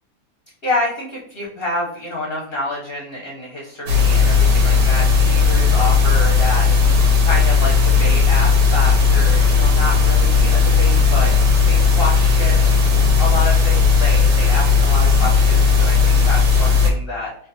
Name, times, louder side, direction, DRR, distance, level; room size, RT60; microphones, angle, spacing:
voice 1, 0.6-11.3 11.6-17.5, left 2 dB, 55° left, -3 dB, 0.6 m, -28 dB
sound 1, 3.9-16.9, left 5 dB, 90° right, 1.4 m, -15 dB
3.1 x 2.3 x 2.6 m, 0.63 s
omnidirectional pair, 1.8 m